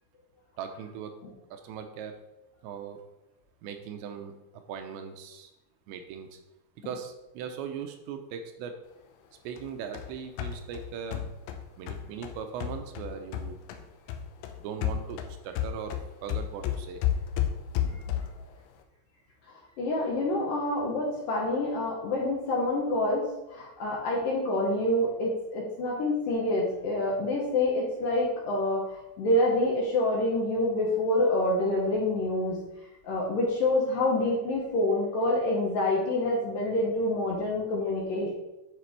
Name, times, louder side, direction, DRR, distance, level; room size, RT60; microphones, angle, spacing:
voice 1, 0.6-1.1 1.5-2.1 2.6-3.0 3.6-4.4 4.7-5.5 5.9-6.4 6.8-8.7 9.4-11.2 11.8-13.6 14.6-15.9 16.2-17.0, right 7 dB, 85° right, 6 dB, 2.9 m, -39 dB
sound 1, 9.6-13.8 14.1-18.5, left 10 dB, 90° left, 3.1 m, -32 dB
voice 2, 19.5-32.6 33.0-38.3, left 1 dB, 65° left, -3 dB, 2.5 m, -27 dB
9.9 x 5.1 x 4.5 m, 0.96 s
omnidirectional pair, 5.2 m